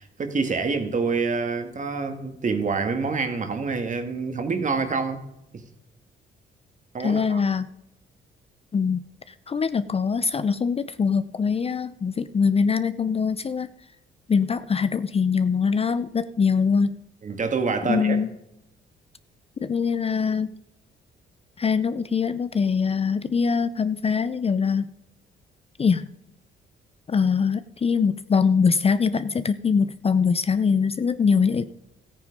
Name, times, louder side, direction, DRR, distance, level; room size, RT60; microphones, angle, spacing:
voice 1, 0.0-5.2 5.5-5.6 6.9-7.4 17.2-18.2, right 4 dB, 40° right, 1.9 m, -27 dB
voice 2, 7.0-7.7 8.7-9.0 9.5-13.7 14.3-17.0 17.9-18.3 19.6-20.5 21.6-24.9 25.8-26.1 27.1-31.7, left 5 dB, 30° left, 0.5 m, -23 dB
14.0 x 9.3 x 5.3 m
cardioid pair, 90°, 20 cm